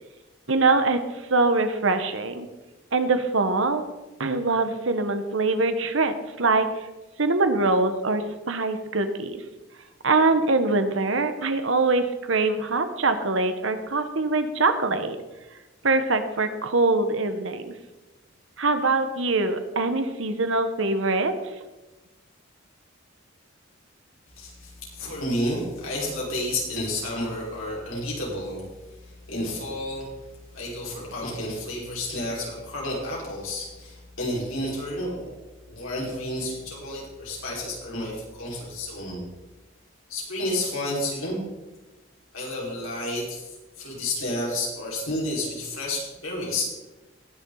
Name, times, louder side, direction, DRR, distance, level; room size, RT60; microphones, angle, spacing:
voice 1, 0.5-2.5 2.9-3.8 4.2-6.9 7.2-9.4 10.0-15.2 15.8-17.7 18.6-21.3, right 3 dB, 70° right, 8 dB, 1.2 m, -23 dB
voice 2, 24.4-28.6 28.9-30.1 30.5-35.2 35.7-39.2 40.1-41.4 42.3-46.6, left 1 dB, 85° left, -4 dB, 4.9 m, -31 dB
20.5 x 7.0 x 4.0 m, 1.1 s
head